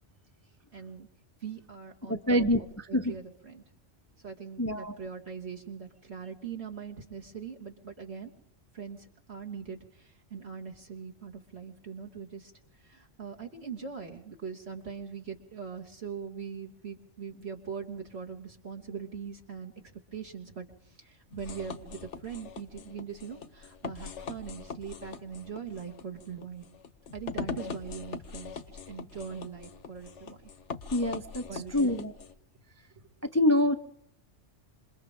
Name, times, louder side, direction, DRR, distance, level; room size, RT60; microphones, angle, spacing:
voice 1, 0.7-1.1 1.4-3.6 4.2-8.3 8.7-12.5 12.8-19.7 20.1-26.7 27.1-30.5 31.5-32.0, right 6 dB, 60° right, 0 dB, 3.0 m, -41 dB
voice 2, 2.1-2.6 2.9-3.1 4.6-5.0 30.9-31.5 31.7-32.1 33.3-33.7, left 1 dB, 15° left, 8 dB, 0.8 m, -25 dB
sound 1, 21.3-32.3, left 5 dB, 75° left, 1.4 m, -42 dB
27.5 x 27.0 x 3.8 m, 0.72 s
omnidirectional pair, 1.2 m